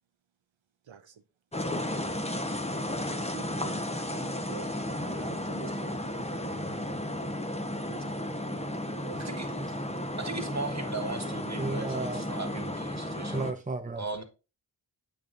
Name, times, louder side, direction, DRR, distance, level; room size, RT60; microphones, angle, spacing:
voice 1, 0.8-1.2 2.7-6.8 7.1-7.2 7.7-9.7, right 7 dB, 85° right, 0.7 m, -48 dB
sound 1, 1.5-13.5, left 1 dB, 15° left, 0.9 m, -34 dB
voice 2, 10.2-13.4 14.0-14.2, right 3 dB, 35° right, 1.5 m, -37 dB
voice 3, 11.6-12.3 13.3-14.1, right 3 dB, 20° right, 0.5 m, -33 dB
8.6 x 6.6 x 2.5 m
wide cardioid pair, 45°, 45 cm